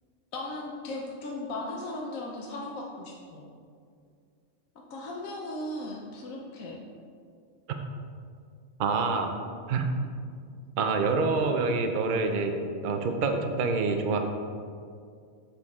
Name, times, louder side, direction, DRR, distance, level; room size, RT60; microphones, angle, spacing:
voice 1, 0.3-3.5 4.9-6.8, left 2 dB, 70° left, -2 dB, 1.1 m, -37 dB
voice 2, 8.8-9.3 9.7-9.8 10.8-12.5 12.8-14.2, right 4 dB, 60° right, 5 dB, 0.5 m, -26 dB
7.0 x 6.4 x 3.6 m, 2.2 s
omnidirectional pair, 1.5 m